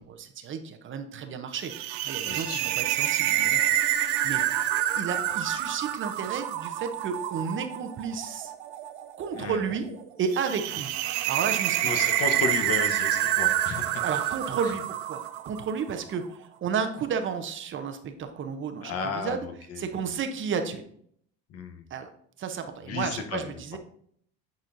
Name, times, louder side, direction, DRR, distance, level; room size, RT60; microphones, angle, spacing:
voice 1, 0.0-1.7 2.0-4.7 4.9-8.5 9.2-9.9 10.2-11.0 11.3-11.9 14.0-19.4 19.8-20.8 21.9-22.1 22.4-23.8, right 6 dB, 40° right, 7 dB, 0.8 m, -32 dB
sound 1, 1.6-15.9, right 12 dB, 80° right, 0.6 m, -28 dB
voice 2, 2.2-2.6 9.3-9.6 11.8-14.0 18.8-19.9 21.5-21.8 22.9-23.4, left 5 dB, 50° left, 5 dB, 1.0 m, -33 dB
9.2 x 4.2 x 2.6 m, 0.64 s
supercardioid pair, 100°, 32 cm